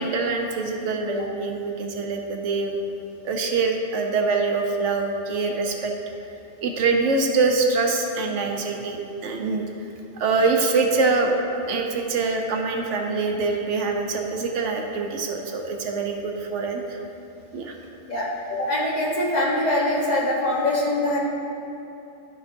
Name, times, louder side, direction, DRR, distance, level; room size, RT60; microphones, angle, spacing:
voice 1, 0.0-2.8 3.2-5.9 6.6-9.6 10.2-11.3 11.7-16.8 17.5-17.7, right 4 dB, 90° right, 2 dB, 1.1 m, -24 dB
voice 2, 18.1-21.2, left 1 dB, 35° left, -5 dB, 1.3 m, -23 dB
12.5 x 5.4 x 2.6 m, 2.9 s
omnidirectional pair, 1.2 m